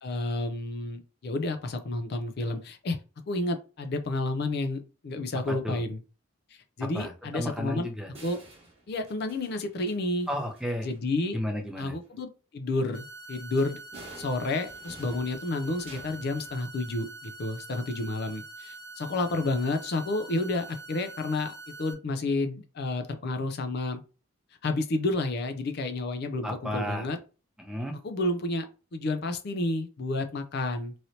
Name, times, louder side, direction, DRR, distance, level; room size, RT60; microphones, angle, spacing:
voice 1, 0.0-3.0 3.3-6.0 6.8-7.9 8.2-8.4 8.9-10.3 10.8-11.4 11.8-13.8 14.2-24.0 24.6-27.2 28.0-30.9, left 2 dB, 55° left, 8 dB, 0.4 m, -30 dB
voice 2, 5.5-5.8 6.8-8.1 10.3-10.9 11.3-11.9 26.4-27.1 27.6-28.0, equal, 5° right, 3 dB, 0.6 m, -33 dB
sound 1, 7.8-7.9 8.1-11.0 13.6-16.5, right 2 dB, 30° right, 1.1 m, -50 dB
sound 2, 12.9-21.9, right 2 dB, 50° right, 0.6 m, -45 dB
3.1 x 2.7 x 2.7 m, 0.33 s
head